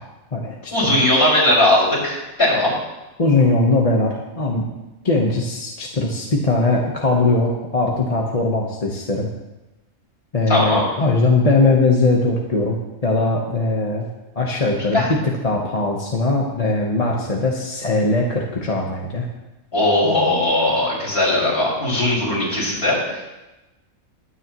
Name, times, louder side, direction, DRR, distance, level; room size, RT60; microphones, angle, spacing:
voice 1, 0.0-1.0 3.2-4.7 5.0-9.3 10.3-14.1 14.3-19.3, left 2 dB, 30° left, -1 dB, 1.1 m, -20 dB
voice 2, 0.7-2.7 10.5-10.8 14.9-15.1 19.7-23.2, left 1 dB, 45° left, -7 dB, 6.1 m, -18 dB
21.5 x 9.6 x 3.1 m, 1.0 s
omnidirectional pair, 1.5 m